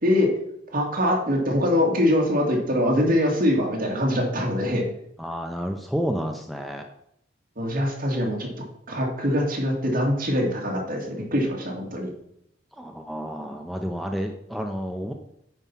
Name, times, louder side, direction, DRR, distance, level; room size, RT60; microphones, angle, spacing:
voice 1, 0.0-0.3 0.7-4.9 7.6-8.5 8.9-12.1, left 1 dB, 50° right, -1 dB, 2.3 m, -23 dB
voice 2, 5.2-6.8 12.8-15.1, equal, ahead, 4 dB, 0.6 m, -30 dB
9.3 x 4.8 x 5.7 m, 0.75 s
head